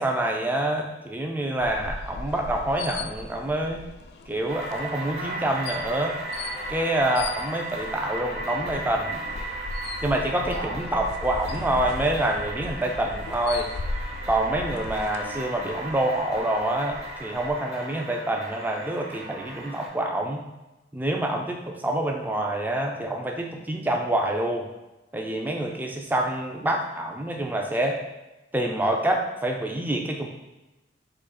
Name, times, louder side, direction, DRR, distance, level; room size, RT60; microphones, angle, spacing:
voice 1, 0.0-3.8 4.3-6.1 6.7-9.2 10.0-13.7 14.3-20.4 20.9-24.7 25.1-28.0 28.5-30.3, right 1 dB, 10° right, 2 dB, 0.4 m, -27 dB
sound 1, 1.6-17.5, left 3 dB, 60° left, 0.3 m, -38 dB
sound 2, 4.5-19.9, right 1 dB, 35° right, 0.8 m, -36 dB
3.8 x 2.9 x 4.1 m, 1.1 s
head